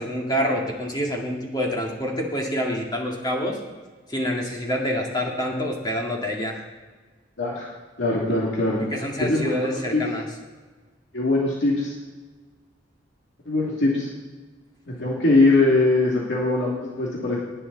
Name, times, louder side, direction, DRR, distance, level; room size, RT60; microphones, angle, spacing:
voice 1, 0.0-3.6 4.1-6.6 8.9-10.2, equal, 20° left, -1 dB, 2.3 m, -27 dB
voice 2, 8.0-8.8 9.2-10.0 11.1-11.9 13.5-14.1 14.9-17.4, left 2 dB, 65° left, -4 dB, 2.7 m, -21 dB
18.5 x 9.9 x 4.1 m, 1.4 s
head